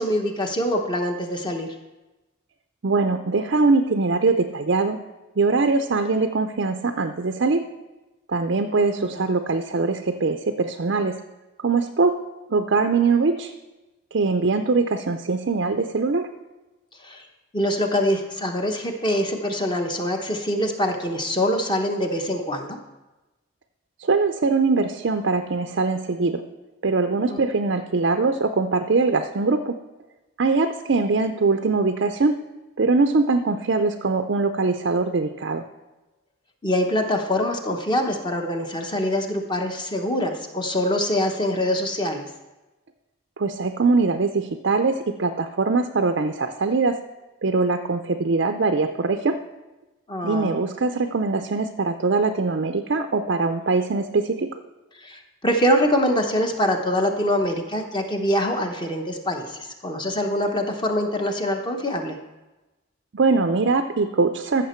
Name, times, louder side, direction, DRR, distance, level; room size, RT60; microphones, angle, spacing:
voice 1, 0.0-1.7 8.8-9.3 17.0-17.3 17.5-22.8 27.3-27.4 36.6-42.3 50.1-50.5 55.0-62.2, equal, 20° left, 3 dB, 0.9 m, -24 dB
voice 2, 2.8-5.0 5.4-7.7 8.3-11.1 11.6-12.2 12.5-13.5 14.1-16.3 24.0-26.4 26.8-29.8 30.4-32.4 32.8-35.6 43.4-47.0 47.4-49.4 50.2-54.5 63.1-64.7, right 3 dB, 55° right, 7 dB, 0.5 m, -22 dB
14.5 x 6.7 x 4.4 m, 1.1 s
head